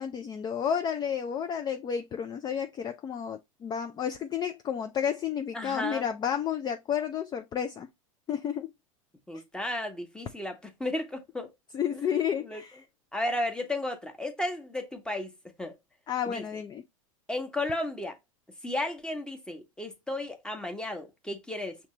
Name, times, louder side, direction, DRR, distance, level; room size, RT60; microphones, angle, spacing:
voice 1, 0.0-7.9 8.3-8.7 11.7-12.8 16.1-16.8, left 8 dB, 25° left, 0.5 m, -31 dB
voice 2, 5.5-6.0 9.3-11.5 11.9-12.0 12.5-12.6 13.1-15.3 15.6-15.8 16.3-16.4 17.3-18.1 18.6-21.8, left 1 dB, 5° left, 1.1 m, -33 dB
5.7 x 2.9 x 3.2 m
hypercardioid pair, 100°, 17 cm